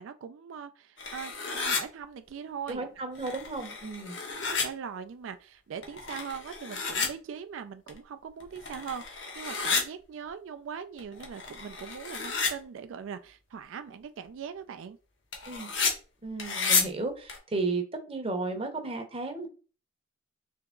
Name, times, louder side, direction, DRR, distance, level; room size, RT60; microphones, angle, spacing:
voice 1, 0.0-2.9 4.5-15.0, right 7 dB, 85° right, 0.4 m, -41 dB
sound 1, 1.0-1.8 2.7-2.8 3.2-4.7 5.8-7.1 7.9-8.0 8.4-9.8 11.0-12.5 15.3-15.9 16.4-16.8 17.3-17.4, left 4 dB, 75° left, 1.0 m, -31 dB
voice 2, 2.7-4.2 15.5-15.7 16.2-19.5, right 3 dB, 30° right, 0.7 m, -34 dB
3.5 x 2.9 x 3.6 m
head